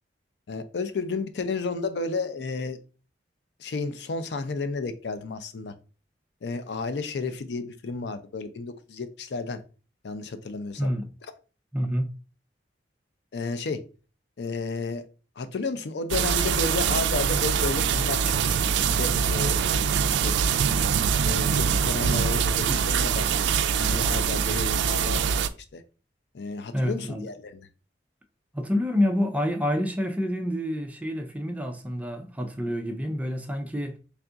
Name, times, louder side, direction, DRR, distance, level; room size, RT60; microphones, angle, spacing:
voice 1, 0.5-2.8 3.6-5.7 6.4-9.6 10.0-10.9 13.3-13.8 14.4-15.0 15.4-19.7 20.0-20.3 21.2-23.5 23.8-25.5 25.7-25.8 26.3-27.7, left 4 dB, 65° left, 0.4 m, -32 dB
voice 2, 10.8-11.1 11.7-12.1 26.7-27.3 28.5-34.0, equal, 10° right, 0.4 m, -28 dB
sound 1, 16.1-25.5, right 7 dB, 75° right, 0.3 m, -24 dB
3.4 x 2.3 x 3.8 m
head